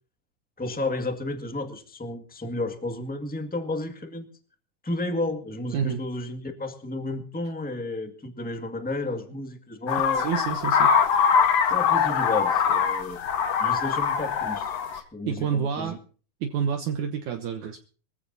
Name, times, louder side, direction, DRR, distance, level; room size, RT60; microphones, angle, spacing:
voice 1, 0.6-4.3 4.8-10.3 11.7-13.2 13.6-14.8 15.1-16.0, left 2 dB, 5° left, 6 dB, 0.9 m, -32 dB
sound 1, 9.9-15.0, left 7 dB, 55° left, 2.1 m, -23 dB
voice 2, 10.1-10.9 14.9-16.0 16.4-17.8, right 7 dB, 65° right, 5 dB, 2.3 m, -29 dB
24.5 x 15.5 x 2.8 m, 0.40 s
omnidirectional pair, 4.0 m